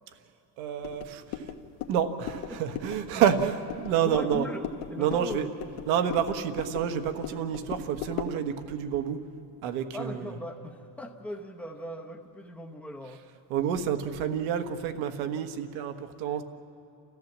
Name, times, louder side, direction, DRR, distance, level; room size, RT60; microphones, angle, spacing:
voice 1, 0.6-1.5 1.9-4.5 5.0-5.5 5.9-9.2 9.6-10.3 13.5-16.4, right 8 dB, 70° right, 8 dB, 1.4 m, -29 dB
sound 1, 0.8-8.4, left 7 dB, 70° left, 1.4 m, -39 dB
voice 2, 4.0-5.8 9.9-13.2, equal, 5° left, 2 dB, 0.9 m, -39 dB
29.5 x 14.5 x 7.4 m, 2.6 s
cardioid pair, 165°, 43 cm